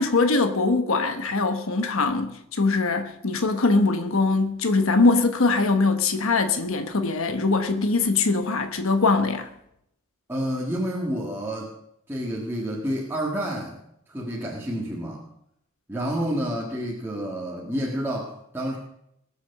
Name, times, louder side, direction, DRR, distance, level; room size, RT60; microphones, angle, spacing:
voice 1, 0.0-9.5, left 3 dB, 70° left, 1.1 m, -22 dB
voice 2, 10.3-11.7 12.1-13.8 14.1-15.2 15.9-18.8, equal, 10° right, 1.7 m, -29 dB
20.5 x 7.0 x 6.8 m
head